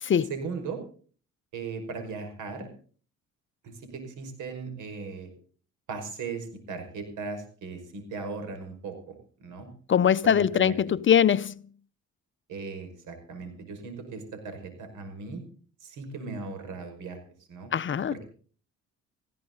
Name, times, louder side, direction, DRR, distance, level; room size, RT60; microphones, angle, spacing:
voice 1, 0.3-0.8 1.5-2.7 3.6-5.3 5.9-9.7 10.2-10.8 12.5-15.4 15.8-17.2 17.5-17.7 18.1-18.2, right 4 dB, 85° right, 5.5 m, -38 dB
voice 2, 9.9-11.6 17.7-18.1, left 8 dB, 40° left, 0.7 m, -22 dB
20.0 x 15.5 x 3.9 m
cardioid pair, 90°, 30 cm